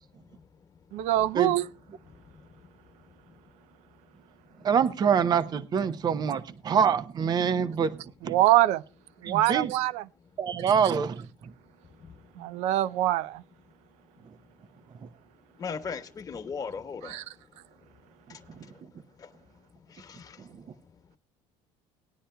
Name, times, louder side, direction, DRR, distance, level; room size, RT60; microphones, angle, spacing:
voice 1, 0.9-1.7 8.2-8.8 9.2-10.1 12.4-13.4 17.0-17.2, right 14 dB, 70° right, 0.5 m, -24 dB
voice 2, 4.6-8.0 8.2-8.4 9.2-9.7 10.4-11.2, right 7 dB, 35° right, 0.7 m, -25 dB
voice 3, 15.6-17.2 20.0-20.4, left 5 dB, 30° left, 1.2 m, -36 dB
19.5 x 10.0 x 2.2 m
cardioid pair, 110°, 12 cm